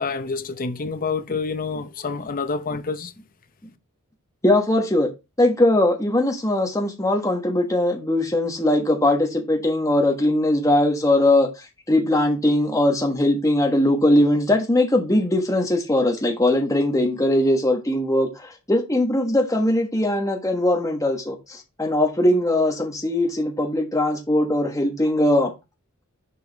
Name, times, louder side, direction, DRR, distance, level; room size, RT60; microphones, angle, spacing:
voice 1, 0.0-3.1, left 4 dB, 40° left, 0.7 m, -28 dB
voice 2, 4.4-5.1 5.4-11.5 11.9-25.5, left 1 dB, 15° left, 1.3 m, -20 dB
6.8 x 4.8 x 3.5 m
head